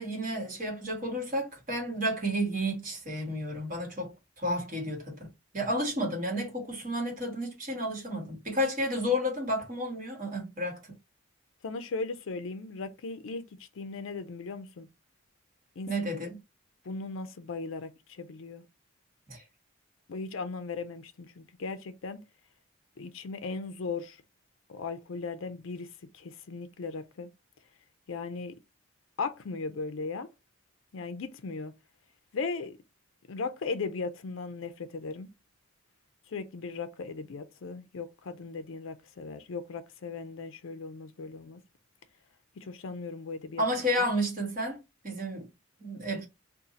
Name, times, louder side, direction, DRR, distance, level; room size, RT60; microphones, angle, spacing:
voice 1, 0.0-10.8 15.9-16.4 19.3-19.4 43.6-45.5 45.8-46.3, equal, 40° right, 1.3 m, -31 dB
voice 2, 11.6-14.9 15.8-15.9 16.8-18.6 20.1-22.2 23.0-24.2 24.7-27.3 28.1-28.5 29.2-30.3 30.9-31.7 32.3-32.8 33.3-35.3 36.3-41.6 42.6-43.6 44.0-44.1, left 4 dB, 65° left, 0.4 m, -37 dB
2.6 x 2.4 x 3.9 m
head